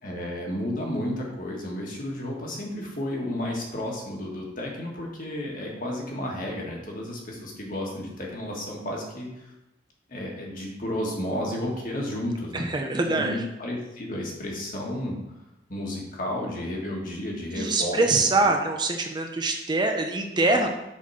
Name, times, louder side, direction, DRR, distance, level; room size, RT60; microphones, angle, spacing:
voice 1, 0.0-9.5 10.1-12.7 13.1-15.2 15.7-18.1 18.4-18.6, left 1 dB, 45° left, -1 dB, 1.7 m, -32 dB
voice 2, 12.5-13.4 17.6-20.7, right 2 dB, 25° right, 3 dB, 0.6 m, -24 dB
7.4 x 4.2 x 5.7 m, 0.92 s
head